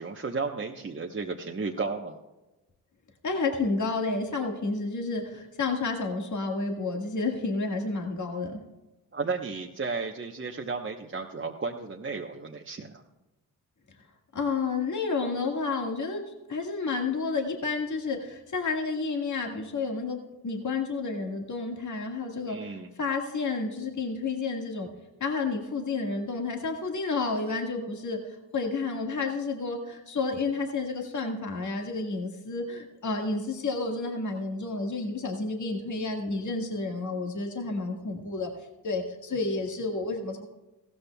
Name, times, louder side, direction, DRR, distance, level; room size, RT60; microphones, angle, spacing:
voice 1, 0.0-2.2 9.1-13.0 22.5-22.9, right 4 dB, 30° right, 0 dB, 1.0 m, -33 dB
voice 2, 3.2-8.6 14.3-16.2 16.5-22.6 23.0-24.9 25.2-28.2 28.5-38.5 38.8-40.4, left 3 dB, 50° left, 2 dB, 1.8 m, -30 dB
15.5 x 13.5 x 2.3 m, 1.0 s
supercardioid pair, 50°, 38 cm